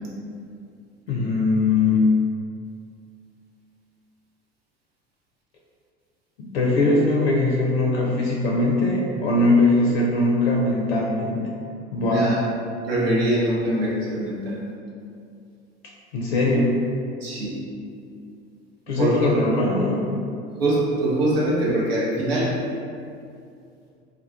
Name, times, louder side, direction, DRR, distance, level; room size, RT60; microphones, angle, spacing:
voice 1, 1.1-2.1 6.4-11.4 11.9-12.3 16.1-16.8 18.9-20.3, left 2 dB, 70° left, -2 dB, 0.5 m, -21 dB
voice 2, 12.0-12.4 12.9-14.6 17.2-17.6 19.0-19.3 20.6-22.5, right 1 dB, 70° right, -5 dB, 0.8 m, -23 dB
3.5 x 2.2 x 2.2 m, 2.4 s
figure-of-eight pair, 70°, 32 cm